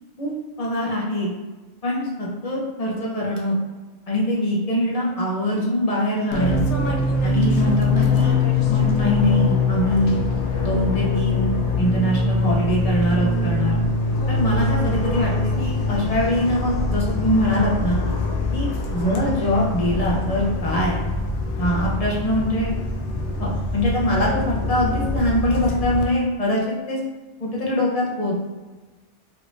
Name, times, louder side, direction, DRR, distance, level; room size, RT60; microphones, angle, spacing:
voice 1, 0.2-1.3 1.8-3.6 4.1-6.6 7.2-8.3 8.7-10.2 10.6-11.5 11.8-13.8 14.3-18.0 18.5-21.0 21.6-22.7 23.4-27.0 27.4-28.4, equal, 35° left, -3 dB, 0.7 m, -23 dB
Fixed-wing aircraft airplane, 6.3-26.0, left 3 dB, 80° left, 0.9 m, -23 dB
3.3 x 3.2 x 2.6 m, 1.2 s
omnidirectional pair, 1.2 m